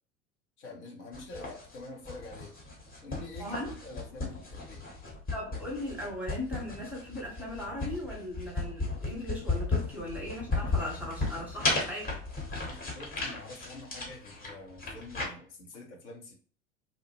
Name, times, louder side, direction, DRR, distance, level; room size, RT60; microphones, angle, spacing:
voice 1, 0.6-2.6 3.0-4.9 12.6-16.3, left 2 dB, 65° left, 0 dB, 0.8 m, -46 dB
sound 1, 1.1-15.2, left 3 dB, 25° left, 1.0 m, -35 dB
voice 2, 3.4-3.7 5.3-12.1, left 1 dB, 5° right, -2 dB, 0.9 m, -38 dB
2.7 x 2.1 x 2.9 m, 0.42 s
figure-of-eight pair, 75°, 38 cm